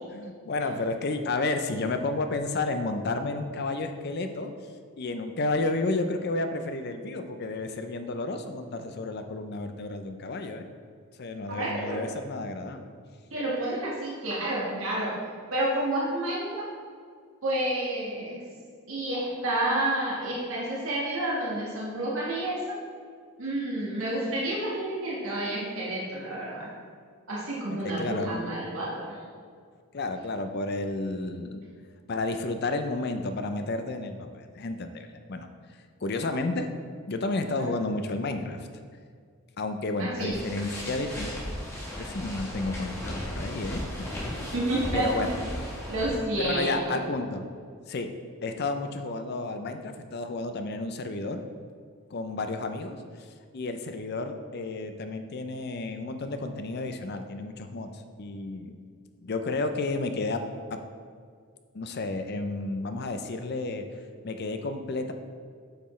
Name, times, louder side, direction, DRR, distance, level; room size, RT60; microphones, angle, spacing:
voice 1, 0.1-4.5 5.0-10.7 11.2-12.9 27.7-28.4 29.9-31.6 32.1-35.5 36.0-36.7 37.1-38.7 39.6-41.3 42.0-44.1 44.9-45.3 46.4-47.4 47.9-48.1 48.4-51.4 52.1-53.3 53.5-58.8 59.2-60.4 60.7-60.8 61.7-63.8 64.2-65.1, left 2 dB, 45° left, 7 dB, 0.5 m, -31 dB
voice 2, 11.5-12.0 13.3-15.1 15.5-16.7 17.4-18.4 18.9-22.6 23.4-26.7 27.3-29.2 40.0-40.4 44.5-45.3 45.9-47.0, right 1 dB, 65° right, -5 dB, 1.5 m, -29 dB
sound 1, 40.3-46.2, equal, 10° left, 1.1 m, -36 dB
8.1 x 5.8 x 3.2 m, 2.1 s
head